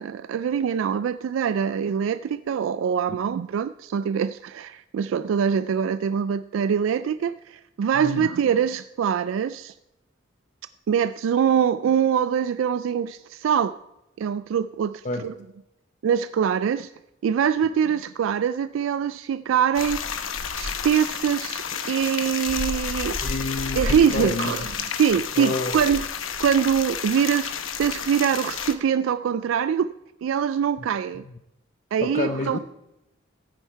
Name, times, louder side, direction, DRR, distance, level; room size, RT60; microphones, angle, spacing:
voice 1, 0.0-9.7 10.9-13.8 14.2-15.3 16.0-16.9 17.2-20.0 20.6-23.2 23.8-24.7 25.0-26.1 26.4-29.9 30.2-31.2 31.9-32.6, right 7 dB, 75° right, 0.3 m, -24 dB
voice 2, 7.9-8.3 15.0-15.2 23.2-24.5 25.4-25.8 30.8-30.9 32.0-32.6, left 3 dB, 40° left, 0.7 m, -29 dB
sound 1, 19.7-28.7, left 6 dB, 85° left, 0.9 m, -30 dB
14.0 x 9.0 x 4.5 m
head